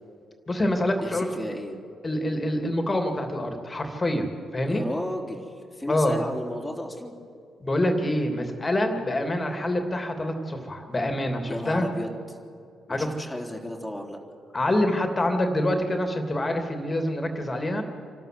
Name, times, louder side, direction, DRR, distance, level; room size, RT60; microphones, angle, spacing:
voice 1, 0.5-1.3 2.0-4.3 4.5-4.8 5.9-6.2 7.6-11.9 12.9-13.1 14.5-17.8, left 1 dB, 25° left, 5 dB, 3.0 m, -26 dB
voice 2, 1.0-1.8 4.6-7.1 11.5-12.4 12.9-14.2, left 1 dB, 5° left, 0 dB, 3.6 m, -33 dB
27.0 x 12.5 x 8.0 m, 2.4 s
figure-of-eight pair, 40°, 0 cm